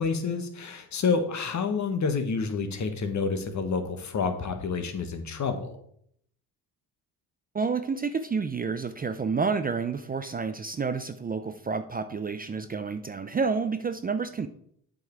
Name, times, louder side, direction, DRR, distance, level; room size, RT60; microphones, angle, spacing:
voice 1, 0.0-5.8, left 5 dB, 45° left, 7 dB, 1.3 m, -28 dB
voice 2, 7.5-14.5, right 5 dB, 25° right, 10 dB, 0.5 m, -29 dB
7.9 x 5.4 x 4.6 m, 0.68 s
cardioid pair, 80°, 38 cm